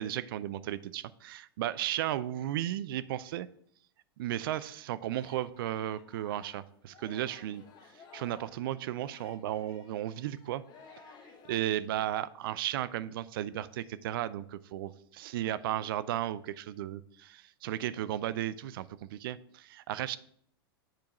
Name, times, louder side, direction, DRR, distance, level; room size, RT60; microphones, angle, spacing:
voice 1, 0.0-3.5 4.2-7.6 8.1-10.6 11.5-20.2, right 12 dB, 60° right, 16 dB, 0.5 m, -34 dB
Singing, 4.7-11.6, left 5 dB, 35° left, 1.3 m, -56 dB
7.6 x 4.6 x 5.1 m, 0.64 s
hypercardioid pair, 95°, 13 cm